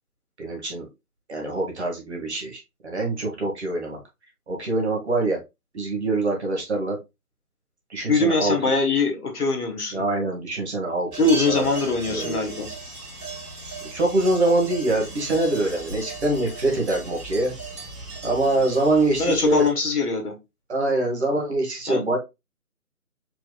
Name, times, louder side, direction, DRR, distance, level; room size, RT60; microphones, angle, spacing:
voice 1, 0.4-0.9 1.3-4.0 4.5-5.4 5.7-7.0 7.9-8.5 9.9-11.6 12.1-12.4 13.9-17.5 18.2-19.7 20.7-22.2, right 2 dB, 45° right, 0 dB, 1.6 m, -24 dB
voice 2, 8.1-10.0 11.2-12.7 19.2-20.3 21.9-22.2, left 3 dB, 80° left, 3 dB, 1.6 m, -22 dB
sound 1, 11.1-19.7, right 3 dB, 90° right, 1.8 m, -37 dB
4.5 x 3.1 x 2.2 m, 0.23 s
figure-of-eight pair, 160°, 45 cm